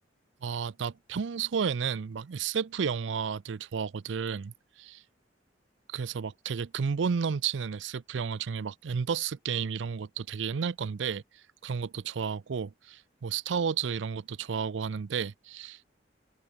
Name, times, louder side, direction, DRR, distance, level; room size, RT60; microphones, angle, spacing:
voice 1, 0.4-5.0 5.9-15.8, right 6 dB, 75° right, 0.5 m, -32 dB
open air
head